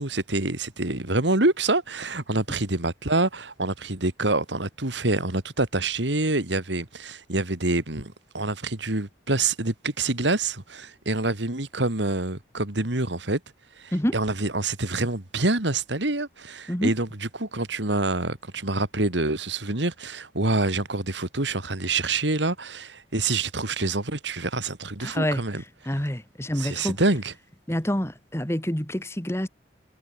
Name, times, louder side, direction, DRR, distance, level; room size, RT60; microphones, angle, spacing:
voice 1, 0.0-13.4 13.8-25.6 26.5-27.3, right 2 dB, 75° right, 2.8 m, -26 dB
voice 2, 25.0-25.4 25.9-27.0 27.7-29.5, equal, 15° left, 1.7 m, -27 dB
head